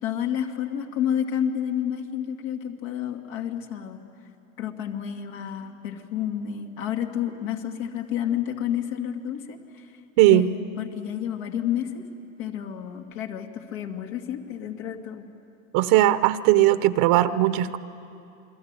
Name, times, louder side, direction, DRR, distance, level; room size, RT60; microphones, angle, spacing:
voice 1, 0.0-4.0 4.6-9.9 10.3-12.1 12.4-15.3, left 9 dB, 70° left, 3 dB, 2.6 m, -30 dB
voice 2, 10.2-10.5 15.7-17.8, right 14 dB, 55° right, 13 dB, 0.9 m, -18 dB
29.0 x 22.5 x 9.1 m, 2.7 s
supercardioid pair, 110°, 41 cm